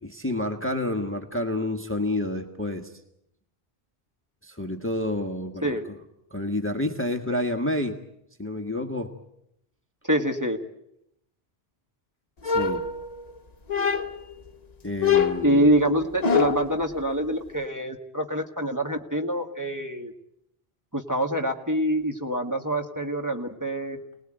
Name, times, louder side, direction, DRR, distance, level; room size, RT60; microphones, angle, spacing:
voice 1, 0.0-2.9 4.4-5.8 6.3-8.0 8.4-9.1 12.5-12.8 14.8-15.7, left 1 dB, 10° left, 5 dB, 1.5 m, -29 dB
voice 2, 10.0-10.6 15.4-20.1 20.9-24.0, right 1 dB, 20° right, 3 dB, 1.9 m, -25 dB
sound 1, 12.4-13.3 13.7-14.3 15.0-16.8, left 6 dB, 40° left, 1.2 m, -24 dB
29.0 x 19.5 x 9.0 m, 0.81 s
omnidirectional pair, 1.0 m